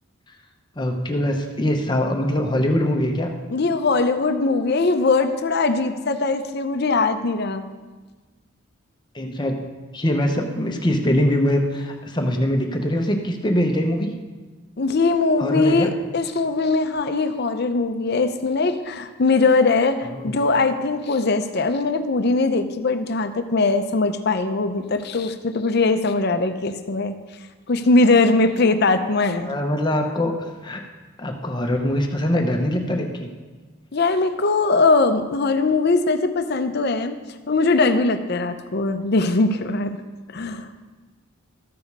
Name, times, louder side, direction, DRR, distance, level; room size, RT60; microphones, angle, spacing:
voice 1, 0.8-3.3 9.1-14.1 15.4-15.9 20.1-20.4 29.4-30.3 30.6-30.8 31.2-33.3, left 1 dB, 20° left, 3 dB, 0.8 m, -23 dB
voice 2, 3.5-7.6 14.8-27.1 27.7-29.5 33.9-37.2 37.5-40.0 40.3-40.8, left 3 dB, 50° left, 9 dB, 0.6 m, -21 dB
13.5 x 5.1 x 5.3 m, 1.3 s
head